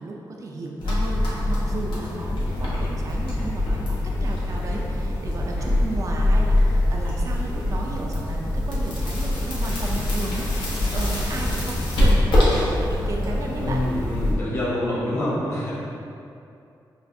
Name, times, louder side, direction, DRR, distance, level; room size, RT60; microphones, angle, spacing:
voice 1, 0.0-13.8, right 2 dB, 40° right, 0 dB, 0.4 m, -34 dB
sound 1, 0.8-14.3, left 1 dB, 85° left, 1.0 m, -23 dB
voice 2, 13.6-15.7, left 1 dB, 35° left, -8 dB, 1.1 m, -26 dB
5.6 x 2.4 x 2.6 m, 2.6 s
wide cardioid pair, 125°, 8 cm